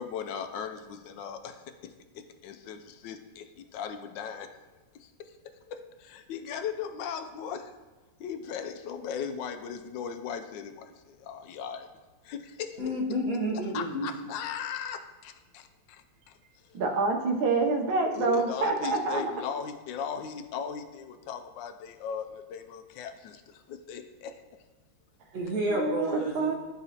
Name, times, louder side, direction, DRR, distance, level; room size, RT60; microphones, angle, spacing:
voice 1, 0.0-4.5 4.9-5.4 5.6-7.7 8.2-11.9 12.2-12.8 13.7-16.4 16.7-16.8 18.1-24.4, left 7 dB, 75° left, 8 dB, 1.2 m, -38 dB
voice 2, 12.8-14.1 25.3-26.5, right 1 dB, 50° right, -3 dB, 1.3 m, -30 dB
voice 3, 16.7-19.3 25.7-26.5, right 3 dB, 75° right, 3 dB, 1.6 m, -27 dB
11.5 x 3.9 x 2.8 m, 1.2 s
omnidirectional pair, 2.2 m